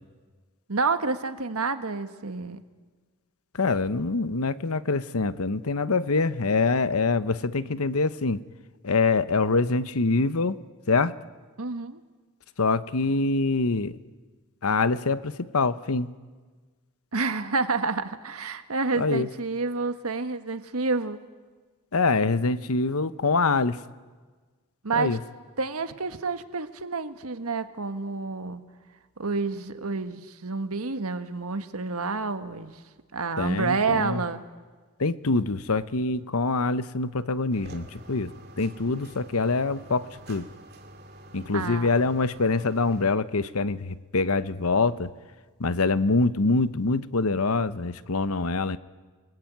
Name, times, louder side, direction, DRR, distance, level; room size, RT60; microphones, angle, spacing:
voice 1, 0.7-2.6 11.6-12.0 17.1-21.2 24.8-25.2 25.6-28.6 29.2-32.8 33.1-34.4 41.5-41.9, right 4 dB, 90° right, 9 dB, 1.5 m, -29 dB
voice 2, 3.5-8.4 8.8-10.6 10.9-11.1 12.6-14.0 14.6-16.1 18.9-19.3 21.9-23.8 24.9-25.2 33.4-34.2 35.0-40.5 41.3-45.1 45.6-48.8, left 3 dB, 85° left, 14 dB, 1.0 m, -25 dB
sound 1, 37.5-43.0, right 1 dB, 45° right, 2.4 m, -47 dB
30.0 x 20.0 x 9.4 m, 1.4 s
head